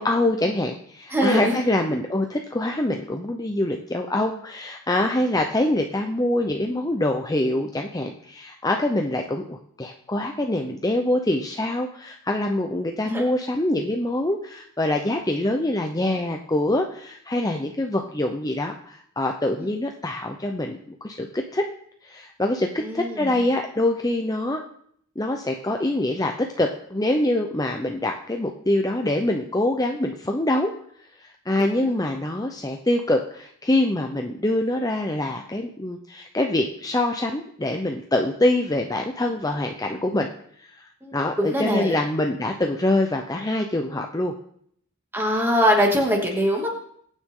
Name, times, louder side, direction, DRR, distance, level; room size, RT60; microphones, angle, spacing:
voice 1, 0.0-21.6 22.0-24.6 25.2-30.7 31.2-40.3 40.6-44.3, left 1 dB, 15° left, 3 dB, 0.8 m, -25 dB
voice 2, 1.1-1.5 13.0-13.3 19.6-19.7 22.8-23.3 31.6-31.9 41.0-41.1 41.4-42.0 45.1-46.7, equal, 10° right, 0 dB, 2.6 m, -23 dB
22.0 x 9.2 x 3.8 m, 0.66 s
head